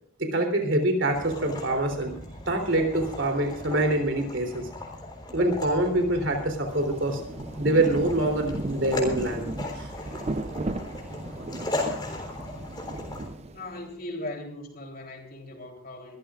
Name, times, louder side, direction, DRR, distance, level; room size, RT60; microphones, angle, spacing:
voice 1, 0.2-2.2 2.5-4.7 5.3-7.2 7.6-9.9, right 1 dB, 60° right, 5 dB, 3.5 m, -25 dB
sound 1, 1.1-13.3, left 2 dB, 20° left, 3.6 m, -37 dB
Rain, 6.7-13.9, right 2 dB, 30° right, 0.6 m, -36 dB
voice 2, 13.4-16.2, left 1 dB, 45° left, 1 dB, 3.5 m, -39 dB
24.0 x 14.5 x 2.5 m, 0.65 s
head